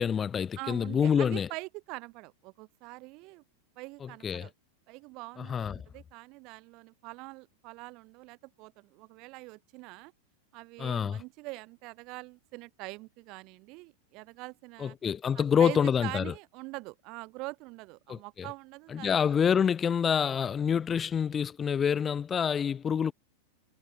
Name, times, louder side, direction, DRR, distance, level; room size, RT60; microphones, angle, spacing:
voice 1, 0.0-1.5 4.0-4.5 5.4-5.8 10.8-11.2 14.8-16.3 18.1-18.5 18.9-23.1, left 7 dB, 20° left, 0.3 m, -27 dB
voice 2, 0.6-3.4 3.8-4.5 4.9-10.1 10.5-15.0 15.3-19.2, right 25 dB, 40° right, 2.1 m, -44 dB
figure-of-eight pair, 90°, 0 cm